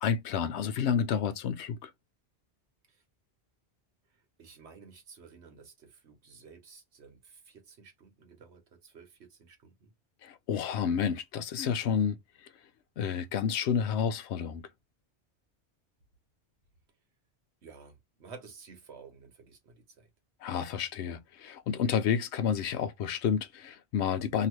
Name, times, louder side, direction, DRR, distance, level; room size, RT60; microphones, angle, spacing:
voice 1, 0.0-1.9 10.2-12.2 13.0-14.7 20.4-24.5, left 7 dB, 75° left, 0.8 m, -30 dB
voice 2, 4.1-9.9 17.6-20.1, right 5 dB, 75° right, 1.3 m, -53 dB
2.9 x 2.8 x 3.0 m
omnidirectional pair, 1.2 m